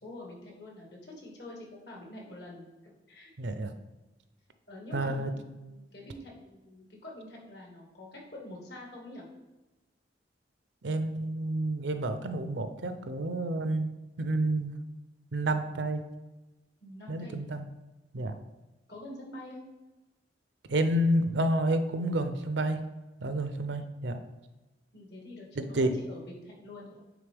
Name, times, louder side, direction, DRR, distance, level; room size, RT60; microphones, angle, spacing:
voice 1, 0.0-2.6 3.1-3.3 4.7-9.2 16.8-17.4 18.9-19.7 24.9-27.0, left 1 dB, 70° left, -2 dB, 2.0 m, -46 dB
voice 2, 3.4-3.7 4.9-5.3 10.8-13.9 14.2-14.7 15.3-16.0 17.1-17.7 18.1-18.3 20.7-22.8 23.2-24.2 25.6-25.9, right 1 dB, 80° right, 9 dB, 0.6 m, -29 dB
9.2 x 3.6 x 3.5 m, 1.1 s
head